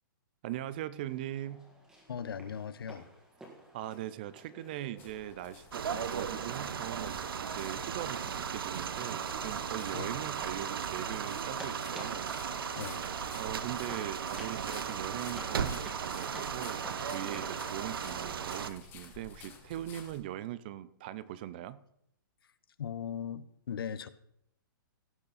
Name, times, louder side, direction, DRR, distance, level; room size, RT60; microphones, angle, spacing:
voice 1, 0.4-1.7 3.7-12.4 13.3-21.8, right 13 dB, 25° right, 17 dB, 0.4 m, -41 dB
sound 1, 1.1-18.5, right 1 dB, 5° right, 1.7 m, -54 dB
voice 2, 2.1-3.1 9.9-10.2 12.8-13.1 22.8-24.1, left 8 dB, 85° left, 15 dB, 0.8 m, -38 dB
sound 2, 5.0-20.2, left 5 dB, 15° left, 1.2 m, -54 dB
sound 3, 5.7-18.7, right 7 dB, 80° right, 0.9 m, -36 dB
17.0 x 6.7 x 4.1 m, 0.75 s
hypercardioid pair, 170°, 12 cm